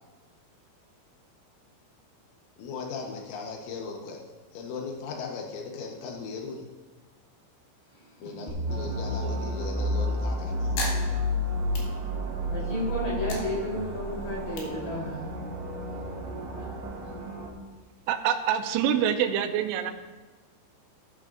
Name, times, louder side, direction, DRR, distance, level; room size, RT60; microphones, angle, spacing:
voice 1, 2.6-4.2 4.5-6.6 8.2-10.7, left 4 dB, 85° left, 0 dB, 3.6 m, -37 dB
voice 2, 8.0-9.0 12.4-15.4 16.5-16.7, left 1 dB, 40° left, -5 dB, 4.4 m, -33 dB
sound 1, 8.5-14.7, left 1 dB, 5° right, 2.6 m, -30 dB
sound 2, 8.7-17.5, right 2 dB, 55° right, 3.4 m, -38 dB
sound 3, 10.7-12.6 13.0-15.6, left 2 dB, 65° left, 3.8 m, -39 dB
voice 3, 18.1-19.9, right 9 dB, 85° right, 5 dB, 2.4 m, -25 dB
14.5 x 13.5 x 2.5 m, 1.3 s
omnidirectional pair, 5.4 m